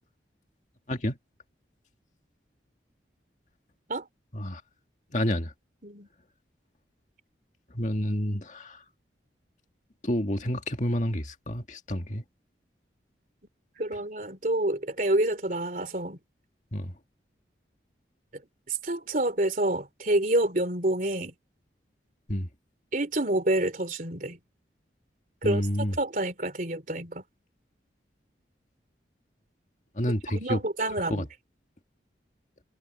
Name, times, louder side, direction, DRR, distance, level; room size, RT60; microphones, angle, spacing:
voice 1, 0.9-1.2 4.3-4.6 5.1-5.5 7.7-8.8 10.0-12.2 16.7-16.9 22.3-22.5 25.4-25.9 30.0-30.6 31.1-31.2, equal, 40° left, 2.0 m, -29 dB
voice 2, 13.8-16.2 18.7-21.3 22.9-24.4 25.4-25.6 26.0-27.2 30.3-31.3, right 1 dB, 45° right, 3.5 m, -28 dB
head